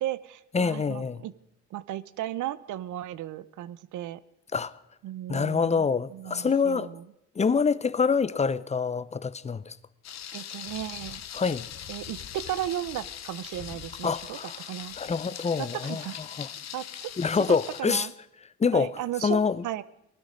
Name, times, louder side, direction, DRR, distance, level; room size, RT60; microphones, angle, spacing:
voice 1, 0.0-1.3 1.7-4.2 5.0-5.9 6.1-7.0 10.3-11.2 11.9-15.0 15.6-16.2 16.7-17.1 17.8-18.1 18.7-19.8, right 13 dB, 80° right, 0.8 m, -35 dB
voice 2, 0.5-1.2 4.5-4.7 5.3-6.9 7.4-9.8 11.3-11.6 14.0-14.6 15.0-16.0 16.4-16.5 17.2-18.1 18.6-18.9 19.2-19.6, left 5 dB, 20° left, 0.6 m, -26 dB
Thunder, 10.0-17.8, left 10 dB, 60° left, 1.1 m, -41 dB
19.0 x 13.0 x 5.2 m
cardioid pair, 90°, 30 cm